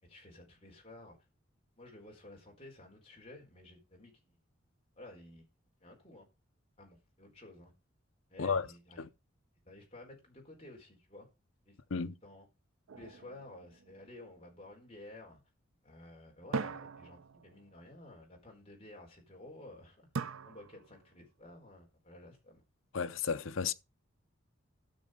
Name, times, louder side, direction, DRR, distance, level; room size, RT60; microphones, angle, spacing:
voice 1, 0.0-1.2 1.8-4.4 5.0-5.5 5.8-6.3 6.8-7.7 8.3-9.0 9.6-11.3 11.6-11.8 12.2-12.4 12.9-15.4 15.8-20.1 20.4-22.6, left 1 dB, 30° left, 4.4 m, -53 dB
sound 1, 12.9-14.5 16.5-17.9 20.2-21.2, right 4 dB, 90° right, 0.6 m, -41 dB
voice 2, 22.9-23.7, left 6 dB, 80° left, 0.7 m, -33 dB
12.5 x 6.5 x 5.1 m
head